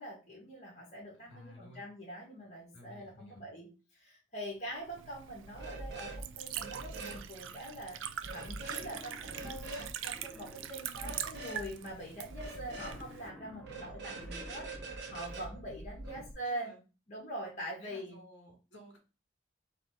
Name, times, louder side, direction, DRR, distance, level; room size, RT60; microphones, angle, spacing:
voice 1, 0.0-3.7 3.9-8.0 8.3-14.7 15.1-16.7 17.1-18.2, right 1 dB, 40° left, -3 dB, 1.6 m, -43 dB
voice 2, 1.3-1.8 2.7-3.5 15.9-16.2 16.4-16.8 17.8-19.0, left 1 dB, 65° left, -1 dB, 2.1 m, -54 dB
Liquid, 4.7-13.3, right 9 dB, 80° right, 0.4 m, -43 dB
sound 1, 5.5-6.2 6.5-7.2 8.2-8.9 9.2-9.9 10.9-11.6 12.3-13.0 13.6-16.3, right 2 dB, 60° right, 1.1 m, -44 dB
Wild animals, 8.6-11.1 12.6-15.1, left 1 dB, ahead, 0.7 m, -54 dB
4.0 x 2.9 x 4.6 m, 0.31 s
head